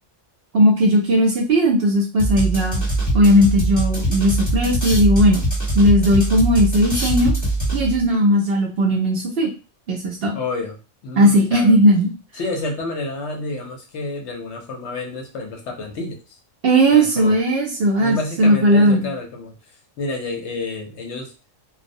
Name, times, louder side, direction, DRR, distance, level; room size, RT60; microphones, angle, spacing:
voice 1, 0.5-2.8 3.1-5.4 5.7-7.3 7.7-9.5 9.9-10.4 11.2-12.1 16.6-19.1, equal, 60° right, -2 dB, 0.7 m, -17 dB
sound 1, 2.2-8.1, right 2 dB, 15° left, 1.1 m, -22 dB
voice 2, 10.3-11.8 12.3-16.4 16.9-17.4 18.0-19.6 20.0-21.3, left 2 dB, 65° left, 2 dB, 0.9 m, -29 dB
2.3 x 2.0 x 2.6 m, 0.32 s
omnidirectional pair, 1.3 m